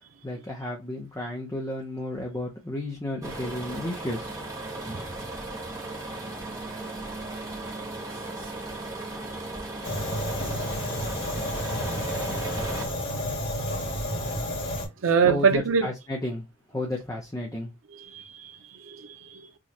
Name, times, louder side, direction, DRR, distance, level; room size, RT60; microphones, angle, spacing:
voice 1, 0.2-4.5 15.2-17.7, left 1 dB, 15° left, 0.7 m, -33 dB
sound 1, 3.2-12.9, right 2 dB, 15° right, 1.0 m, -36 dB
Fire, 9.8-14.9, equal, 75° left, 1.8 m, -30 dB
voice 2, 15.0-15.9 17.9-19.5, right 5 dB, 90° right, 0.6 m, -25 dB
4.9 x 2.3 x 2.8 m
head